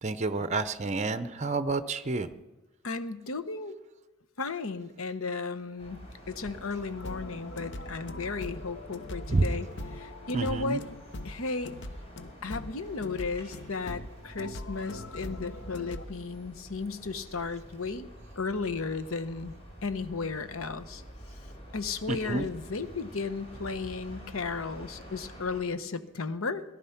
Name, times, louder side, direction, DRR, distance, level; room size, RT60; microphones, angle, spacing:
voice 1, 0.0-2.3 9.3-9.5 10.3-10.8 22.1-22.4, right 3 dB, 35° right, 12 dB, 0.6 m, -29 dB
voice 2, 2.8-3.7 4.4-6.0 6.3-9.7 10.0-10.8 11.2-11.7 12.4-18.1 18.4-19.5 19.8-21.0 21.7-26.6, left 4 dB, 80° left, 12 dB, 1.0 m, -34 dB
sound 1, 5.8-25.6, equal, 30° left, 3.8 m, -48 dB
sound 2, 7.0-16.0, left 2 dB, 55° left, 0.8 m, -42 dB
17.5 x 12.0 x 5.8 m, 1.1 s
head